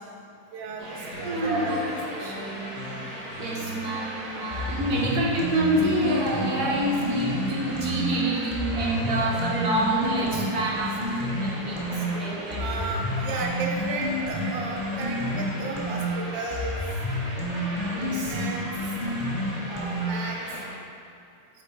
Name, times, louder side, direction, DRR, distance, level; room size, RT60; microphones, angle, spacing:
voice 1, 0.5-1.8 2.1-2.6 12.6-16.8 18.3-18.7 19.7-20.4, right 3 dB, 85° right, -1 dB, 1.4 m, -34 dB
sound 1, 0.8-20.7, equal, 25° right, 1.1 m, -38 dB
sound 2, 1.1-9.8, right 1 dB, 65° left, 1.9 m, -40 dB
voice 2, 1.2-1.9 3.4-12.9 17.9-18.3, right 1 dB, 65° right, -4 dB, 1.5 m, -27 dB
sound 3, 4.5-8.0 8.5-12.0 12.5-20.3, left 1 dB, 35° left, 0.6 m, -30 dB
8.1 x 3.5 x 4.5 m, 2.4 s
omnidirectional pair, 2.0 m